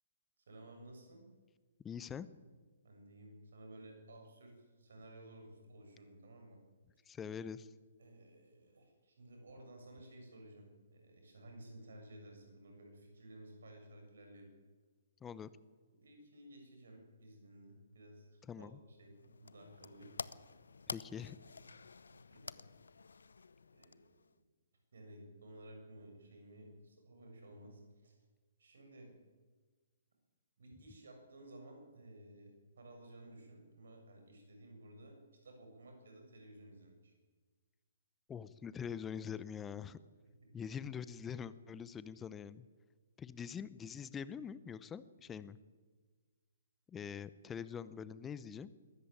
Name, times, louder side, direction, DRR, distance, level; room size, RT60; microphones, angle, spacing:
voice 1, 0.5-1.2 2.8-6.6 8.0-14.5 16.0-20.3 22.1-22.6 23.7-24.4 24.9-28.2 28.6-29.1 30.6-37.1 40.4-40.7, right 1 dB, 65° right, 3 dB, 7.2 m, -56 dB
voice 2, 1.8-2.3 7.1-7.7 15.2-15.5 18.5-18.8 20.9-21.4 38.3-40.0 40.5-42.6 43.2-45.6 46.9-48.7, left 7 dB, 15° left, 16 dB, 0.8 m, -44 dB
sound 1, 19.0-24.4, left 4 dB, 75° left, 0.7 m, -50 dB
21.5 x 13.5 x 9.2 m, 1.4 s
figure-of-eight pair, 130°, 0 cm